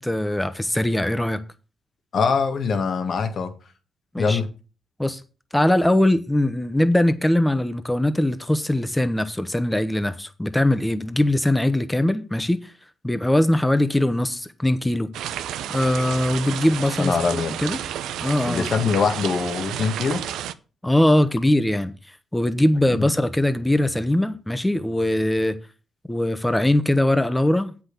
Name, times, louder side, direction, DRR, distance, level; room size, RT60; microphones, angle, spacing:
voice 1, 0.0-1.4 4.1-4.4 5.0-5.2 5.5-12.6 13.0-15.1 15.7-17.1 17.6-17.8 18.2-18.7 20.8-21.9 22.3-25.6 26.1-27.8, left 1 dB, 10° left, 1.2 m, -21 dB
voice 2, 2.1-3.5 4.2-4.5 17.0-17.6 18.4-20.3 22.8-23.1, left 5 dB, 65° left, 1.7 m, -23 dB
sound 1, 15.1-20.5, right 10 dB, 90° right, 0.6 m, -31 dB
7.9 x 6.1 x 6.8 m
cardioid pair, 65°, 0 cm